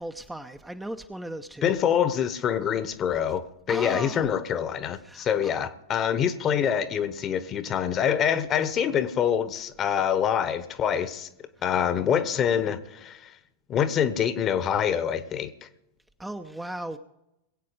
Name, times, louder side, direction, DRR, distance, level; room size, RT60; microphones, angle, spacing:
voice 1, 0.0-1.7 3.7-4.3 5.0-5.5 16.2-17.0, right 1 dB, 5° right, 0.8 m, -37 dB
voice 2, 1.6-11.3 11.6-13.3 13.7-15.7, left 8 dB, 30° left, 1.2 m, -25 dB
22.0 x 8.5 x 5.1 m
figure-of-eight pair, 90°, 0 cm